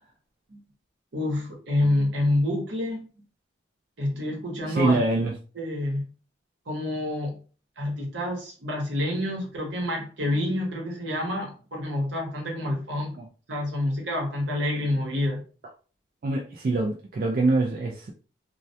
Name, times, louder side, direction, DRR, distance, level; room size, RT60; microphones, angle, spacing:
voice 1, 1.1-3.0 4.0-5.0 5.5-6.0 6.7-7.4 7.8-13.2 13.5-15.4, left 1 dB, 75° right, 0.9 m, -28 dB
voice 2, 4.6-5.3 13.2-13.3 16.2-18.1, right 2 dB, 50° right, 0.3 m, -24 dB
2.2 x 2.1 x 2.6 m
head